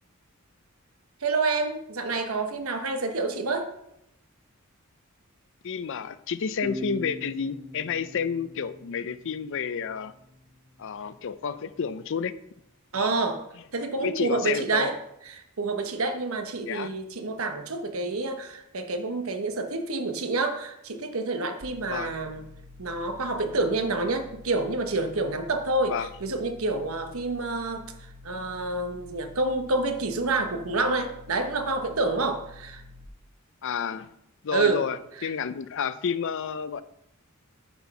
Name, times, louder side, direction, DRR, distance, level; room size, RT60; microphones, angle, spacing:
voice 1, 1.2-3.7 12.9-13.4 13.7-14.9 15.3-22.4 22.8-27.8 28.2-32.8 34.5-34.8 35.2-35.3, right 3 dB, 80° right, 7 dB, 1.0 m, -28 dB
voice 2, 5.6-10.1 10.8-12.3 12.9-13.1 14.0-14.9 16.7-16.9 21.9-22.1 25.9-26.1 33.6-34.1 34.4-36.8, left 6 dB, 60° left, 14 dB, 0.5 m, -30 dB
sound 1, 6.6-10.0, right 1 dB, 10° right, 1.9 m, -40 dB
sound 2, 21.6-33.1, left 2 dB, 45° right, 0.7 m, -48 dB
9.5 x 4.4 x 5.7 m, 0.79 s
head